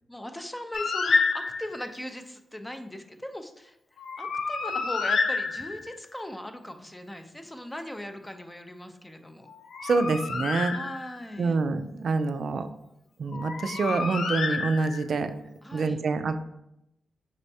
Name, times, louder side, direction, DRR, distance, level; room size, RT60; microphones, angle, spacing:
voice 1, 0.1-9.5 10.7-11.6 15.6-16.0, left 1 dB, 10° left, 7 dB, 0.5 m, -39 dB
Bird, 0.7-1.9 4.0-6.1 9.5-11.4 13.3-15.2, left 4 dB, 75° left, 0.4 m, -29 dB
voice 2, 9.8-10.7 11.4-12.7 13.2-15.3 15.7-16.4, right 4 dB, 60° right, 10 dB, 0.3 m, -26 dB
5.3 x 3.2 x 2.7 m, 0.83 s
cardioid pair, 75°, 0 cm